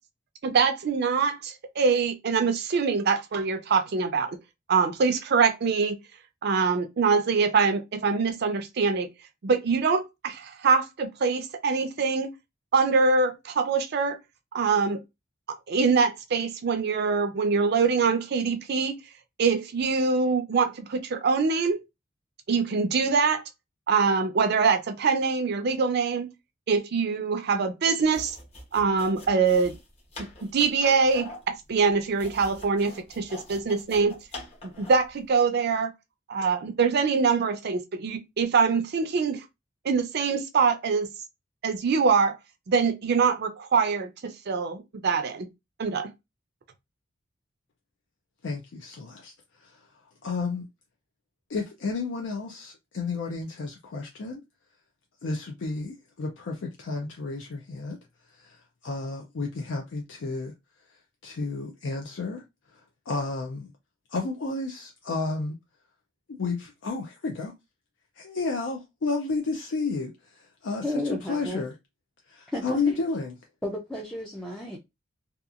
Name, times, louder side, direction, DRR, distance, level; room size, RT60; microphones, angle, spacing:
voice 1, 0.4-4.4 4.7-6.0 6.4-9.1 9.4-12.3 12.7-14.2 14.5-15.0 15.7-18.9 19.4-21.8 22.5-23.4 23.9-26.3 26.7-28.4 28.7-29.7 30.2-30.3 30.5-31.3 31.7-34.2 34.8-35.9 36.3-39.4 39.8-41.1 41.6-42.3 42.7-45.5 45.8-46.1, right 5 dB, 55° right, 0.5 m, -24 dB
sound 1, 28.0-35.1, left 2 dB, 30° left, 0.9 m, -44 dB
voice 2, 48.4-49.3 49.6-49.8 50.2-50.7 51.5-54.4 55.2-58.0 58.4-60.5 61.2-62.4 62.7-62.8 63.1-63.7 64.1-65.6 66.3-67.5 68.2-70.8 71.3-71.7 72.3-73.3, left 3 dB, 65° left, 0.4 m, -31 dB
voice 3, 70.8-71.6 72.5-73.0 73.6-74.8, left 1 dB, 5° left, 0.4 m, -32 dB
2.7 x 2.3 x 2.4 m
head